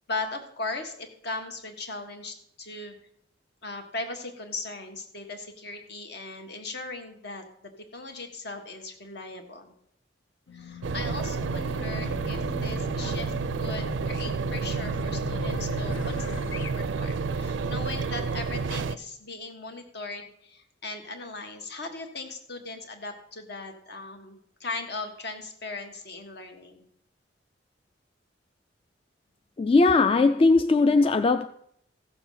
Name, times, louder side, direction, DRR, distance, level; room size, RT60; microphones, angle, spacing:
voice 1, 0.1-2.9 3.6-9.7 10.5-26.9, left 3 dB, 60° left, 1.6 m, -38 dB
Race car auto racing / Alarm, 10.5-16.7, left 4 dB, 80° left, 0.7 m, -40 dB
sound 1, 10.8-19.0, right 4 dB, 80° right, 0.4 m, -30 dB
voice 2, 29.6-31.5, left 3 dB, 30° left, 0.3 m, -19 dB
15.0 x 6.9 x 5.7 m
head